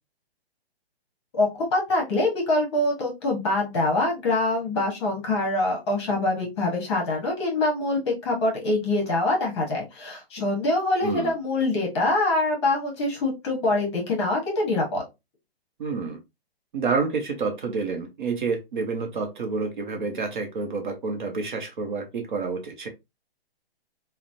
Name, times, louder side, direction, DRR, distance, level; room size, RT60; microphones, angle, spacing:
voice 1, 1.3-15.0, left 2 dB, 25° left, 0.8 m, -24 dB
voice 2, 11.0-11.3 15.8-16.2 16.7-22.9, right 4 dB, 50° right, 0.7 m, -28 dB
2.9 x 2.1 x 2.5 m
hypercardioid pair, 160°, 31 cm